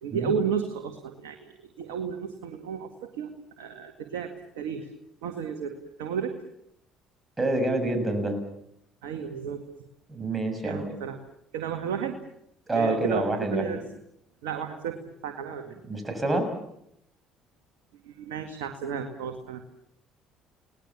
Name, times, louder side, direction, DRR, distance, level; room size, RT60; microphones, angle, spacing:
voice 1, 0.0-3.3 3.6-4.9 5.2-6.4 9.0-9.6 10.6-11.2 11.5-12.2 12.7-13.8 14.4-15.7 18.0-19.6, right 7 dB, 80° right, 5 dB, 2.0 m, -33 dB
voice 2, 7.4-8.4 10.1-10.9 12.7-13.8 15.8-16.5, right 2 dB, 20° right, 6 dB, 7.2 m, -27 dB
30.0 x 19.0 x 7.4 m, 0.76 s
hypercardioid pair, 60°, 0 cm